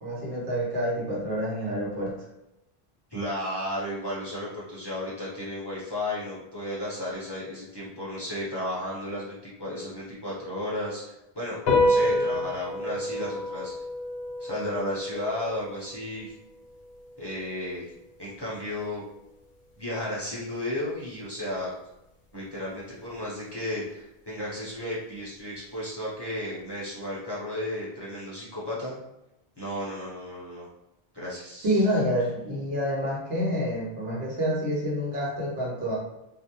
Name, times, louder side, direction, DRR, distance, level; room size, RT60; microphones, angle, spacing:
voice 1, 0.0-2.1 31.6-36.0, equal, 75° right, -5 dB, 1.1 m, -28 dB
voice 2, 3.1-13.7 14.4-16.3 17.2-17.8 18.2-19.0 19.8-21.7 22.3-28.9 29.6-30.7 31.1-31.8, left 1 dB, 30° left, -8 dB, 0.6 m, -34 dB
sound 1, 11.7-18.4, left 1 dB, 70° left, 0.8 m, -29 dB
2.5 x 2.0 x 2.8 m, 0.88 s
omnidirectional pair, 1.1 m